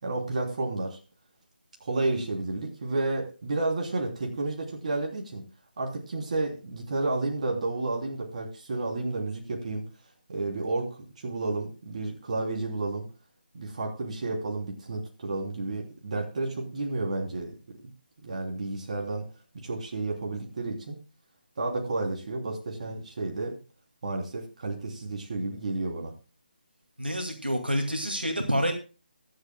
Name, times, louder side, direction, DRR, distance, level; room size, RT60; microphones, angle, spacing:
voice 1, 0.0-1.0 1.8-5.4 5.8-9.8 10.3-13.0 13.5-17.6 18.2-19.3 19.6-21.0 21.6-23.6 24.0-26.1, right 2 dB, 45° right, 1 dB, 3.2 m, -31 dB
voice 2, 27.0-28.7, equal, 90° right, 4 dB, 2.3 m, -28 dB
23.5 x 7.8 x 2.3 m, 0.34 s
figure-of-eight pair, 150°, 5 cm